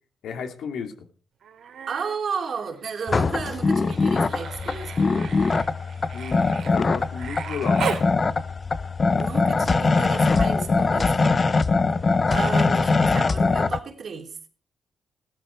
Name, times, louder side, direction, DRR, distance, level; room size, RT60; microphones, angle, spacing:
voice 1, 0.2-1.0 6.1-7.8, left 6 dB, 80° left, 2.8 m, -33 dB
Human voice, 1.4-2.2 2.5-8.1 9.7-9.8, right 7 dB, 70° right, 3.1 m, -36 dB
voice 2, 1.9-5.2 9.1-11.5 12.3-14.5, right 5 dB, 55° right, 3.3 m, -33 dB
sound 1, 3.1-13.8, left 3 dB, 35° left, 0.9 m, -22 dB
16.0 x 13.0 x 4.6 m
cardioid pair, 85°, 0 cm